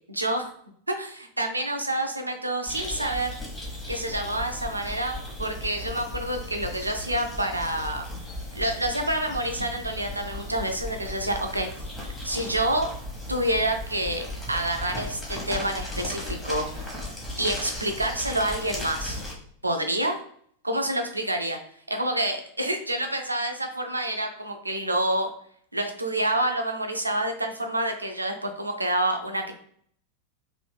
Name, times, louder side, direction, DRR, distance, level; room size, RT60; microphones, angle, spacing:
voice 1, 0.1-0.5 0.9-3.3 3.9-8.0 8.5-11.7 12.2-12.9 13.3-16.9 17.4-19.2 19.6-20.2 20.6-21.6 21.9-25.3 25.7-29.5, right 1 dB, 85° right, 4 dB, 0.5 m, -28 dB
sound 1, 2.7-19.3, left 1 dB, 5° left, 1.1 m, -36 dB
3.1 x 2.6 x 3.2 m, 0.62 s
figure-of-eight pair, 90°, 0 cm